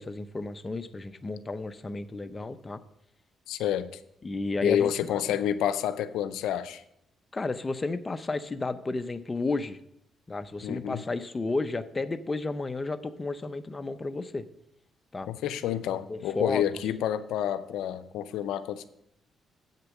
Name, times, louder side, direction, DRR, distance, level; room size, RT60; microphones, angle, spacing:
voice 1, 0.0-2.8 4.2-5.2 7.3-9.8 10.3-14.5 15.1-15.3 16.1-16.6, left 3 dB, 25° left, 11 dB, 0.6 m, -32 dB
voice 2, 3.5-3.9 4.6-6.8 10.6-11.0 15.3-18.9, left 10 dB, 85° left, 11 dB, 0.5 m, -29 dB
8.1 x 6.7 x 6.0 m, 0.77 s
cardioid pair, 90°, 0 cm